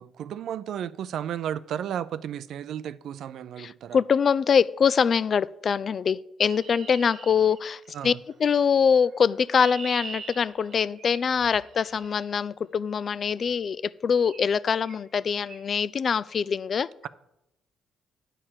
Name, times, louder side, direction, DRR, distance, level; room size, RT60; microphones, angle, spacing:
voice 1, 0.0-4.0 7.9-8.2, right 9 dB, 75° right, 0.4 m, -33 dB
voice 2, 3.6-8.1 8.4-16.9, left 6 dB, 50° left, 0.3 m, -24 dB
Chirp tweet, 6.5-8.1 9.1-12.3 13.4-13.6 14.2-14.5 14.8-15.0 15.3-15.6, right 5 dB, 60° right, 1.1 m, -43 dB
9.8 x 4.6 x 7.5 m
cardioid pair, 90°, 0 cm